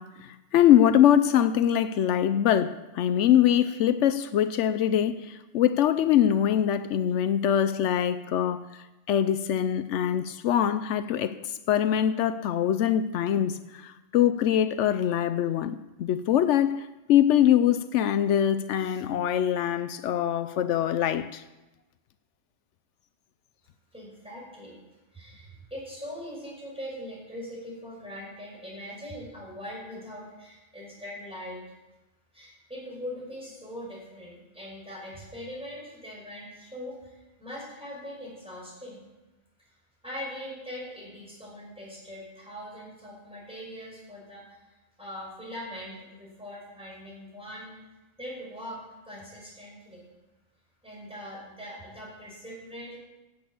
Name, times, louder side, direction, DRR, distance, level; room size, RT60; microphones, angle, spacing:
voice 1, 0.0-21.4, left 10 dB, 85° left, 0.9 m, -23 dB
voice 2, 23.9-24.8 25.1-31.6 32.3-39.0 40.0-47.7 48.2-48.8 49.0-50.0 50.8-53.0, equal, 5° right, 5.3 m, -41 dB
10.5 x 8.1 x 8.6 m
omnidirectional pair, 1.2 m